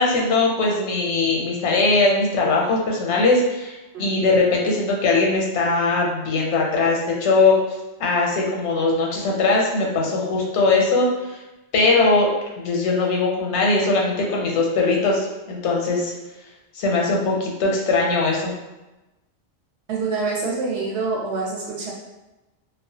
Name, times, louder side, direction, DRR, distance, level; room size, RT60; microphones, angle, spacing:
voice 1, 0.0-7.6 8.0-11.1 11.7-12.3 12.6-16.1 16.7-18.5, left 3 dB, 85° left, -1 dB, 0.9 m, -20 dB
voice 2, 19.9-21.9, right 4 dB, 75° right, -3 dB, 0.9 m, -26 dB
2.3 x 2.1 x 2.7 m, 1.0 s
omnidirectional pair, 1.2 m